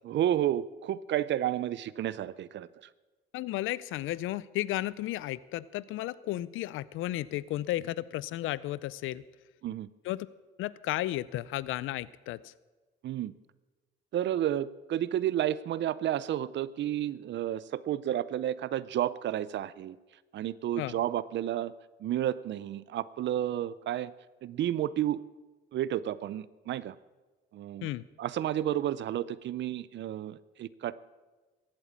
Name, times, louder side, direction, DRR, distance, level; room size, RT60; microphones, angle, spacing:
voice 1, 0.0-2.7 9.6-9.9 13.0-13.3 14.1-20.0 20.3-21.7 22.0-24.1 24.4-25.2 25.7-26.9 27.5-27.9 28.2-30.9, right 11 dB, 65° right, 18 dB, 0.5 m, -31 dB
voice 2, 3.3-9.2 10.0-10.3 10.6-12.5 20.8-20.9 27.8-28.0, left 15 dB, 85° left, 20 dB, 0.4 m, -33 dB
14.5 x 8.8 x 8.2 m, 1.3 s
cardioid pair, 90°, 20 cm